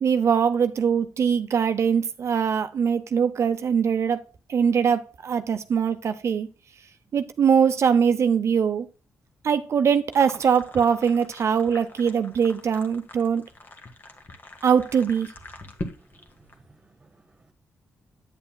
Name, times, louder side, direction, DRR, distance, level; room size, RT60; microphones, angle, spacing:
voice 1, 0.0-4.2 4.5-6.5 7.1-8.9 9.4-13.4 14.6-15.3, right 7 dB, 55° right, 0.7 m, -22 dB
sound 1, 10.1-16.6, left 2 dB, 35° left, 1.5 m, -42 dB
voice 2, 16.0-17.5, right 2 dB, 25° right, 1.6 m, -58 dB
9.0 x 8.1 x 2.2 m
cardioid pair, 100°, 6 cm